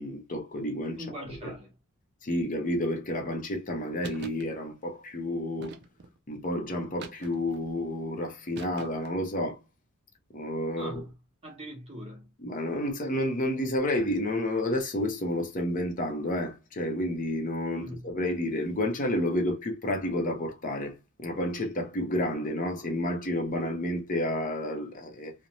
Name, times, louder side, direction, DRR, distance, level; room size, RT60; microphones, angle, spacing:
voice 1, 0.0-1.0 1.4-1.5 2.2-5.7 6.3-9.6 10.3-10.9 12.4-25.3, left 1 dB, 40° left, 0.6 m, -30 dB
voice 2, 1.0-1.7 10.8-11.1 11.4-12.3 17.7-18.1, equal, 30° right, 1.0 m, -41 dB
sound 1, 4.0-4.5 5.6-6.2 7.0-7.6 8.5-9.2, right 4 dB, 50° right, 0.4 m, -44 dB
2.6 x 2.1 x 2.9 m
head